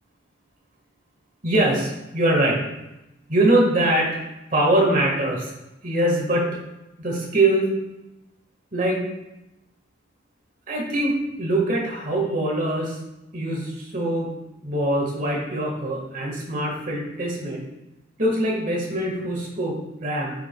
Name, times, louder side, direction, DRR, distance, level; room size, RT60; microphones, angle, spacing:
voice 1, 1.4-2.6 3.3-4.2 4.5-5.5 5.8-6.5 7.0-7.7 8.7-9.0 10.7-13.0 13.3-14.3 14.6-17.6 18.2-20.3, right 1 dB, 45° right, -1 dB, 1.4 m, -23 dB
12.0 x 4.9 x 2.2 m, 0.94 s
head